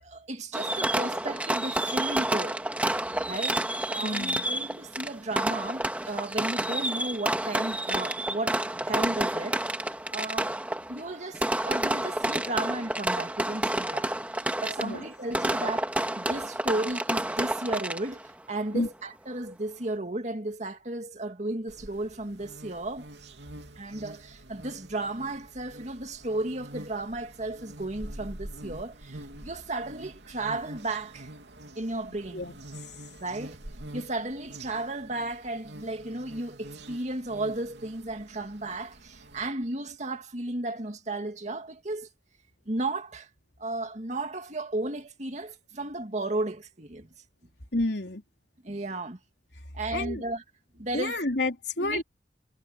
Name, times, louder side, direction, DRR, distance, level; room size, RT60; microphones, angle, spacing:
voice 1, 0.0-2.6 3.3-3.6 3.9-10.5 10.9-23.1 23.8-31.3 31.7-32.4 33.2-33.6 33.9-42.1 42.7-43.3 43.6-47.1 48.6-49.2 49.7-50.4 50.7-51.2 51.8-52.0, right 2 dB, 40° right, 2.3 m, -34 dB
Fireworks, 0.5-18.3, right 1 dB, 10° right, 1.7 m, -29 dB
voice 2, 4.0-4.5 14.8-15.0 18.7-18.9 32.3-32.6 47.7-48.2 49.9-50.2 50.9-52.0, left 2 dB, 70° left, 4.0 m, -30 dB
sound 1, 21.7-39.5, right 1 dB, 80° right, 3.0 m, -46 dB
head